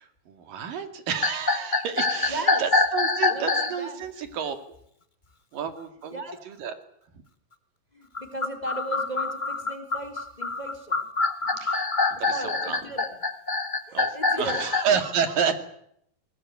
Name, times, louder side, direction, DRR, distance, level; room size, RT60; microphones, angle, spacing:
voice 1, 0.0-4.6 5.5-6.8 11.6-13.0 13.9-15.5, right 7 dB, 75° right, 8 dB, 3.9 m, -30 dB
sound 1, 1.2-3.8 8.1-14.9, left 3 dB, 35° left, 0.7 m, -25 dB
voice 2, 2.1-2.7 3.3-4.0 6.1-6.4 7.9-11.1 11.5-11.6 12.3-13.2 13.9-14.7, right 2 dB, 10° left, 8 dB, 2.9 m, -36 dB
22.5 x 19.5 x 9.4 m, 0.70 s
omnidirectional pair, 4.0 m